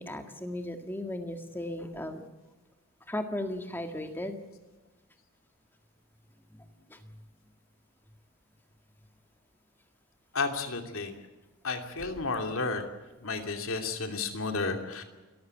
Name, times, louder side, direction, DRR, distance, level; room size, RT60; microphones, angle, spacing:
voice 1, 0.0-2.2 3.1-4.4 6.5-7.2, left 1 dB, 10° left, 5 dB, 1.8 m, -36 dB
voice 2, 10.3-11.1 11.6-12.8 13.2-15.0, left 4 dB, 65° left, 5 dB, 2.8 m, -32 dB
28.5 x 14.5 x 8.3 m, 1.2 s
head